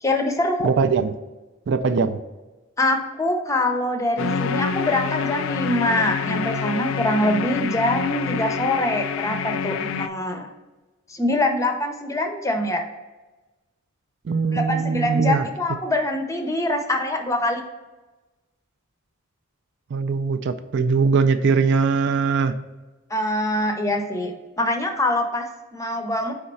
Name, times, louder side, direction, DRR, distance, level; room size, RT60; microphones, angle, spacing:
voice 1, 0.0-0.7 2.8-10.5 11.1-12.8 14.5-17.6 23.1-26.3, left 1 dB, 15° left, 5 dB, 0.6 m, -24 dB
voice 2, 0.6-1.1 1.7-2.2 14.3-15.4 19.9-22.5, right 5 dB, 55° right, 10 dB, 0.4 m, -21 dB
sound 1, 4.2-10.1, left 6 dB, 65° left, 0.3 m, -27 dB
4.7 x 4.3 x 5.3 m, 1.2 s
head